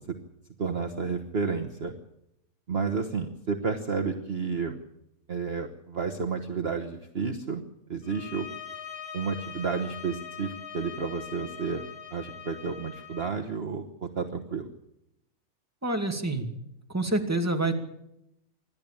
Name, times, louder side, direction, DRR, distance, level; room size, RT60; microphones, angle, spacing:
voice 1, 0.6-1.9 2.7-4.8 5.3-7.6 7.9-8.5 9.1-11.8 12.1-14.7, right 5 dB, 45° right, 3 dB, 1.5 m, -31 dB
sound 1, 8.0-13.4, left 7 dB, 75° left, 2.7 m, -42 dB
voice 2, 15.8-16.5 16.9-17.8, right 2 dB, 10° right, 4 dB, 2.3 m, -27 dB
26.5 x 12.5 x 8.8 m, 0.84 s
omnidirectional pair, 1.6 m